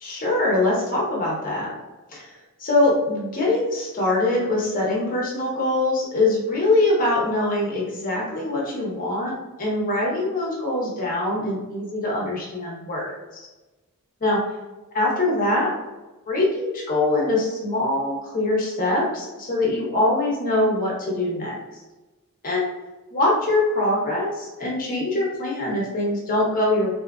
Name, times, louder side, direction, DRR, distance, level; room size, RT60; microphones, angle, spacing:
voice 1, 0.0-1.7 2.1-2.3 2.6-13.5 14.2-14.4 14.9-15.7 16.3-21.5 22.4-22.7 23.1-26.9, left 2 dB, 40° left, -4 dB, 0.8 m, -23 dB
2.8 x 2.3 x 2.3 m, 1.1 s
head